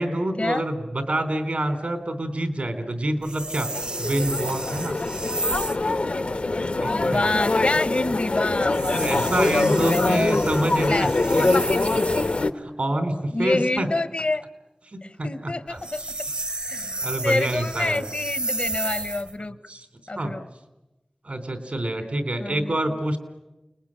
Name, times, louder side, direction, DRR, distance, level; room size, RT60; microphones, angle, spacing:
voice 1, 0.0-3.7 4.0-5.0 6.8-7.3 9.0-11.1 11.4-11.7 12.4-13.9 14.9-16.1 17.0-18.1 19.7-19.9 20.2-20.4 21.2-23.2, right 1 dB, 80° right, 7 dB, 3.7 m, -27 dB
sound 1, 3.2-5.9 8.6-12.5 15.7-19.3, right 2 dB, 50° right, 0.9 m, -32 dB
sound 2, 3.7-12.5, left 2 dB, 85° left, 1.1 m, -24 dB
voice 2, 6.9-9.2 9.5-10.5 10.9-11.1 13.3-14.5 15.0-16.0 16.7-19.6 20.1-20.4 22.4-22.7, left 2 dB, 70° left, 13 dB, 1.1 m, -27 dB
29.5 x 20.5 x 8.9 m, 1.0 s
wide cardioid pair, 40°, 2 cm